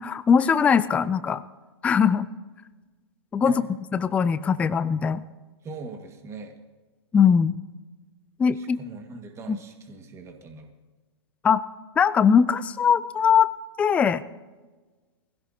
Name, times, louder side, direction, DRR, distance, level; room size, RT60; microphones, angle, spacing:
voice 1, 0.0-1.4 1.8-2.3 3.3-3.5 3.9-5.2 7.1-7.6 8.4-8.8 9.5-9.6 11.4-11.6 12.0-13.5 13.8-14.2, left 7 dB, 10° left, 15 dB, 0.3 m, -20 dB
voice 2, 5.6-6.6 8.5-10.7, right 4 dB, 20° right, 4 dB, 1.8 m, -41 dB
22.5 x 16.5 x 2.8 m, 1.3 s
hypercardioid pair, 130°, 14 cm